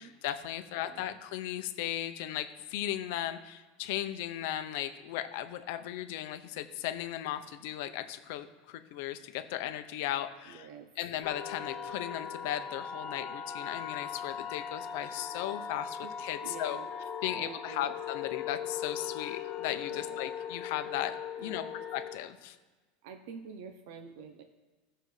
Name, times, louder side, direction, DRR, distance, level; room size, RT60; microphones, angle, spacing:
voice 1, 0.0-10.7 11.0-16.8 17.2-21.2 21.4-21.6 21.9-22.6, left 12 dB, 60° left, 9 dB, 0.7 m, -36 dB
voice 2, 0.8-1.2 10.5-10.9 16.0-16.1 16.4-16.9 17.3-18.0 19.9-20.3 21.4-21.9 23.0-24.4, right 6 dB, 60° right, 6 dB, 0.7 m, -47 dB
sound 1, 11.2-22.2, left 8 dB, 35° left, 0.9 m, -39 dB
16.5 x 6.6 x 3.2 m, 1.2 s
supercardioid pair, 170°, 0 cm